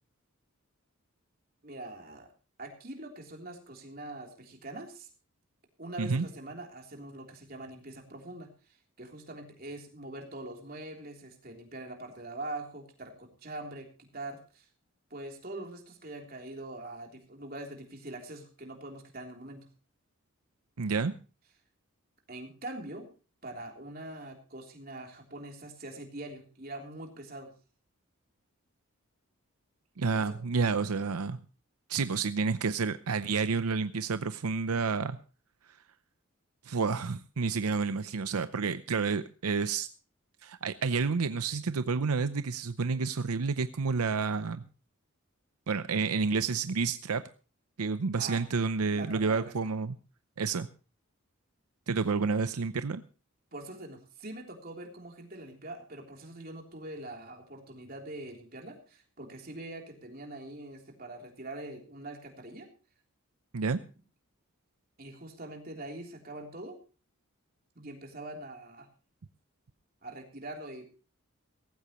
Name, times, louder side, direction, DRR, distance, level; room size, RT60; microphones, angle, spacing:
voice 1, 1.6-2.3 2.6-5.1 5.8-14.7 15.1-19.7 22.3-23.1 23.4-27.5 30.1-30.3 48.2-48.4 48.9-49.5 53.5-62.7 65.0-66.7 67.7-68.9 70.0-70.9, right 2 dB, 40° right, 2 dB, 3.4 m, -43 dB
voice 2, 20.8-21.1 30.0-31.4 31.9-35.2 36.6-39.9 40.4-44.6 45.7-47.2 47.8-50.0 50.4-50.7 51.9-53.0 63.5-63.8, right 4 dB, 90° right, 12 dB, 0.7 m, -29 dB
17.5 x 15.5 x 3.0 m, 0.36 s
head